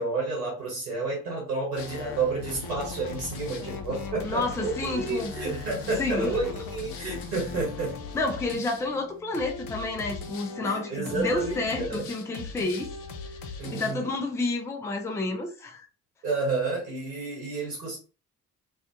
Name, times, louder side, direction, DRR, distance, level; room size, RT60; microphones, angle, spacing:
voice 1, 0.0-8.0 10.6-12.1 13.6-14.1 16.2-18.0, right 3 dB, 80° right, 1.0 m, -30 dB
sound 1, 1.8-13.9, left 4 dB, 50° left, 0.6 m, -39 dB
voice 2, 4.2-5.3 6.0-6.3 8.1-12.9 13.7-15.9, left 2 dB, 5° left, 0.4 m, -30 dB
2.4 x 2.4 x 2.5 m
figure-of-eight pair, 45°, 46 cm